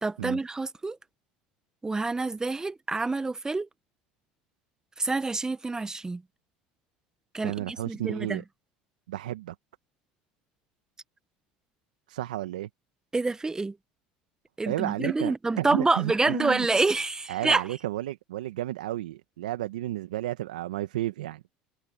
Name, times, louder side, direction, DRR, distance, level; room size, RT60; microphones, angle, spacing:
voice 1, 0.0-1.0 1.8-3.7 5.0-6.2 7.3-8.4 13.1-13.8 14.6-17.6, right 3 dB, 15° right, 1.0 m, -27 dB
voice 2, 7.4-8.4 9.1-9.5 12.1-12.7 14.6-16.7 17.3-21.4, right 14 dB, 85° right, 1.3 m, -32 dB
hypercardioid pair, 85°, 4 cm